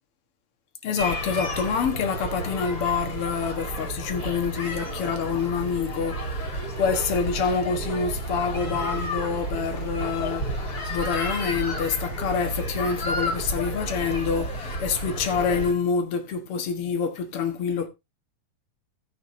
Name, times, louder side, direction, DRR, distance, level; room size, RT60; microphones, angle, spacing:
voice 1, 0.8-17.9, left 6 dB, 50° left, 2.0 m, -27 dB
sound 1, 1.0-15.7, right 1 dB, 30° left, 3.4 m, -31 dB
18.0 x 6.3 x 2.7 m
omnidirectional pair, 3.8 m